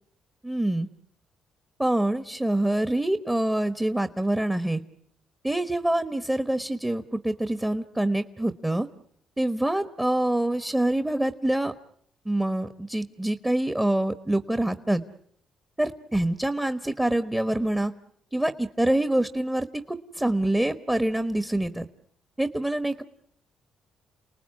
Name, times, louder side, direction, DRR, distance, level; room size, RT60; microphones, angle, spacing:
voice 1, 0.4-0.9 1.8-4.8 5.4-8.9 9.4-11.7 12.2-15.0 15.8-17.9 18.3-21.9 22.4-23.0, right 1 dB, 10° right, 11 dB, 1.2 m, -25 dB
29.5 x 19.5 x 9.7 m, 0.69 s
cardioid pair, 90°, 0 cm